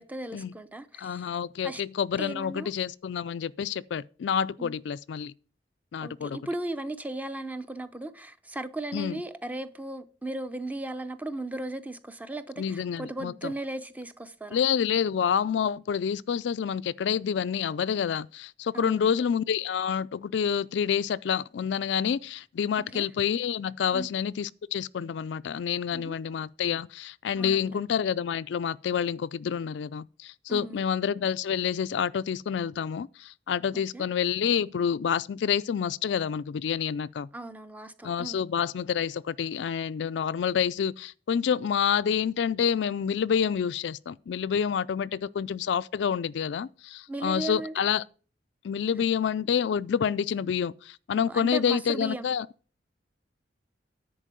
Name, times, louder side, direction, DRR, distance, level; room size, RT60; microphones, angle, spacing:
voice 1, 0.0-1.3 1.6-1.8 2.2-2.7 4.6-4.7 6.0-14.6 18.7-19.2 22.9-23.1 23.9-24.1 25.9-26.2 27.4-27.8 30.5-30.9 33.7-34.1 37.3-38.4 47.1-47.8 51.3-52.3, right 2 dB, 10° right, 0.6 m, -37 dB
voice 2, 1.0-5.3 5.9-6.4 8.9-9.2 12.6-13.5 14.5-37.3 38.0-48.0 48.6-52.5, left 7 dB, 70° left, 0.3 m, -28 dB
10.0 x 4.5 x 7.5 m
head